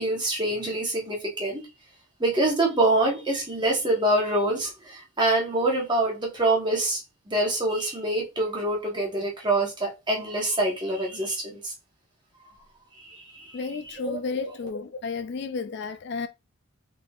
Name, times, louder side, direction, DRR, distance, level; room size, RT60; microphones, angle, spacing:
voice 1, 0.0-1.6 2.2-7.0 7.3-11.7 13.3-13.4 13.9-14.2, right 2 dB, 20° right, 1.1 m, -25 dB
voice 2, 13.5-16.3, left 4 dB, 50° left, 0.3 m, -32 dB
3.7 x 3.4 x 2.4 m
head